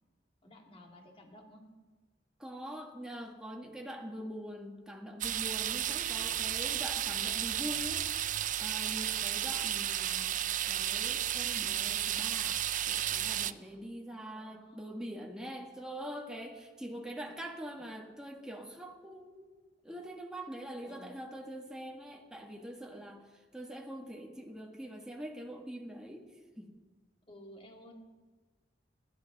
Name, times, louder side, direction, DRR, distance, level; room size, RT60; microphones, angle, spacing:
voice 1, 0.4-1.6 13.6-13.9 14.3-15.0 20.8-21.2 27.3-27.9, equal, 30° left, 2 dB, 2.5 m, -54 dB
voice 2, 2.4-8.3 8.6-19.5 19.8-26.7, equal, 5° right, 1 dB, 1.7 m, -44 dB
sound 1, 5.2-13.5, right 11 dB, 45° right, 0.5 m, -33 dB
28.0 x 11.5 x 4.1 m, 1.3 s
head